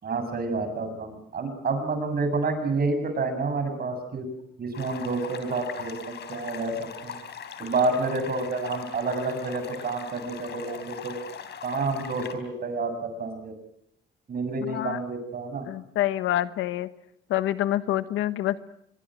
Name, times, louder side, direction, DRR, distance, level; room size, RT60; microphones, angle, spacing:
voice 1, 0.0-4.3 4.6-7.2 7.6-11.2 11.6-13.5 14.3-15.7, right 3 dB, 50° right, 8 dB, 7.2 m, -29 dB
sound 1, 4.7-12.3, left 7 dB, 60° left, 4.0 m, -40 dB
voice 2, 14.7-15.0 15.7-16.9 17.3-18.7, left 13 dB, 85° left, 12 dB, 1.3 m, -27 dB
25.5 x 23.0 x 7.7 m, 0.73 s
cardioid pair, 90°, 20 cm